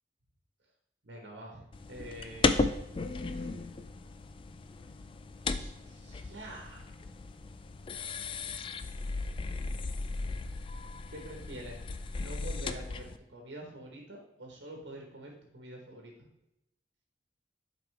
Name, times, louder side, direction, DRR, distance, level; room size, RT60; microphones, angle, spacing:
voice 1, 1.0-2.7 5.5-7.0 11.1-11.8 12.2-16.3, right 1 dB, 90° right, 0 dB, 1.2 m, -46 dB
sound 1, 1.7-13.2, left 3 dB, 30° left, 0.3 m, -35 dB
8.1 x 5.0 x 3.3 m, 0.88 s
head